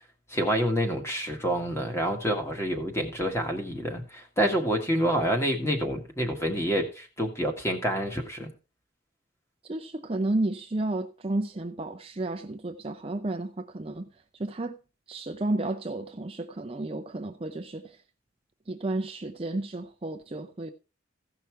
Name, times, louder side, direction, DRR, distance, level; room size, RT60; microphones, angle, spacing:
voice 1, 0.3-8.5, equal, 15° left, 1.7 m, -28 dB
voice 2, 9.6-14.1 14.4-14.8 15.1-18.0 18.7-20.7, right 2 dB, 30° right, 0.5 m, -32 dB
15.5 x 5.8 x 4.6 m
head